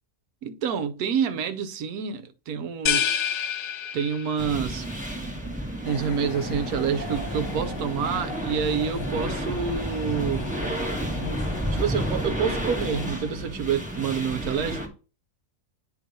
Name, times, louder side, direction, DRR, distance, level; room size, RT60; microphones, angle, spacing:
voice 1, 0.4-3.2 3.9-4.9 5.8-10.5 11.7-14.8, right 7 dB, 75° right, 1.2 m, -28 dB
sound 1, 2.9-4.6, left 9 dB, 85° left, 1.1 m, -27 dB
sound 2, 4.4-14.9, right 1 dB, 5° right, 1.1 m, -31 dB
sound 3, 5.8-13.1, left 4 dB, 55° left, 1.3 m, -38 dB
8.8 x 3.0 x 5.2 m
omnidirectional pair, 1.6 m